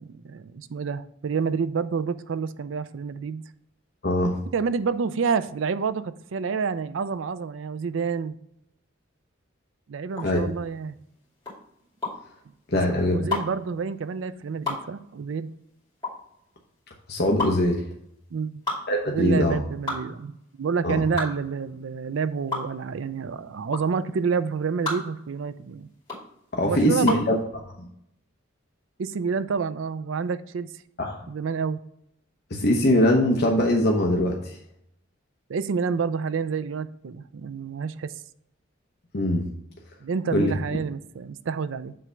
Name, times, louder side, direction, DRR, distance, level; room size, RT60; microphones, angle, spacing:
voice 1, 0.0-3.4 4.5-8.4 9.9-11.0 12.9-15.5 18.3-18.6 19.1-25.9 26.6-27.3 29.0-30.7 31.3-31.8 35.5-38.1 40.0-42.0, right 5 dB, 65° right, 0.4 m, -28 dB
voice 2, 4.0-4.3 10.2-10.5 12.7-13.2 17.1-17.8 18.9-19.6 20.8-21.0 26.5-27.4 31.0-31.2 32.5-34.6 39.1-39.5 40.3-40.5, left 1 dB, 55° left, 0.9 m, -22 dB
sound 1, 10.1-27.3, left 3 dB, 20° left, 2.5 m, -33 dB
7.7 x 3.3 x 5.1 m
head